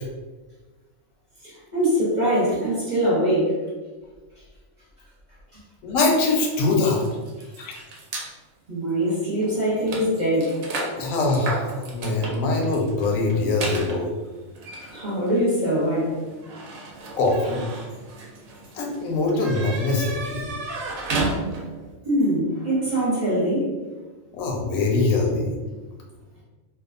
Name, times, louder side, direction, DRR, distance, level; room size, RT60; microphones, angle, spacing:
voice 1, 1.4-3.6 7.4-7.5 8.7-10.6 14.9-16.1 22.0-23.7, equal, 40° right, -7 dB, 0.8 m, -23 dB
voice 2, 5.8-7.0 7.6-7.7 11.0-11.6 11.9-14.1 17.2-17.6 18.7-20.5 24.3-25.5, left 3 dB, 85° left, 0 dB, 1.0 m, -23 dB
sound 1, 6.0-8.3 9.0-9.2 9.4-21.9, right 2 dB, 85° right, 1.0 m, -34 dB
2.7 x 2.3 x 2.4 m, 1.3 s
omnidirectional pair, 1.4 m